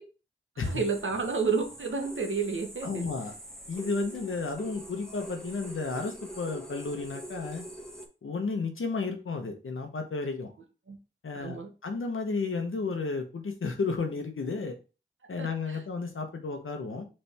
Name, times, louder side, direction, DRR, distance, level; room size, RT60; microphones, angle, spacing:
sound 1, 0.6-8.1, right 1 dB, 5° left, 1.2 m, -44 dB
voice 1, 0.6-3.0 10.9-11.0 11.3-11.7 15.4-15.8, right 5 dB, 75° right, 3 dB, 1.1 m, -30 dB
voice 2, 2.8-3.3 3.7-7.7 8.2-10.5 11.2-14.8 15.3-17.1, left 4 dB, 85° left, 4 dB, 0.9 m, -32 dB
4.3 x 3.4 x 3.3 m, 0.33 s
cardioid pair, 40°, 20 cm